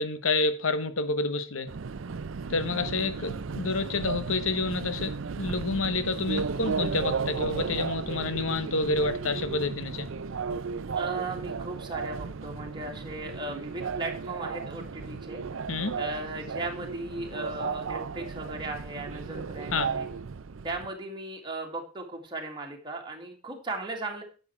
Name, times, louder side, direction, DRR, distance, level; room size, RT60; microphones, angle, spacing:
voice 1, 0.0-1.7 2.5-10.1 15.7-16.0 19.7-19.9, left 3 dB, 75° left, 1.1 m, -29 dB
Subway metro underground, 1.7-20.9, right 5 dB, 65° right, 0.5 m, -34 dB
voice 2, 10.9-15.4 16.0-20.1 20.6-24.2, right 2 dB, 25° right, 2.1 m, -37 dB
10.0 x 6.9 x 4.6 m
head